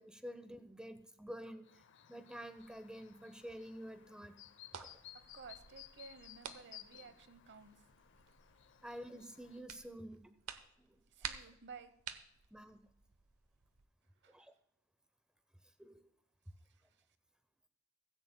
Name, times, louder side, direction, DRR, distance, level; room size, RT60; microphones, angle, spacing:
voice 1, 0.0-1.8 2.1-4.3 4.7-4.9 8.8-10.3 10.8-11.3 12.5-12.8 14.3-14.5 15.8-16.1, equal, 5° right, 10 dB, 0.8 m, -49 dB
Chirp tweet, 1.6-9.6, left 12 dB, 55° left, 0.6 m, -58 dB
sound 1, 2.6-13.9, right 8 dB, 85° right, 0.9 m, -53 dB
voice 2, 5.1-7.8 11.1-11.9 14.2-14.5 16.6-17.1, right 5 dB, 55° right, 12 dB, 0.9 m, -55 dB
16.0 x 15.0 x 2.2 m, 0.73 s
head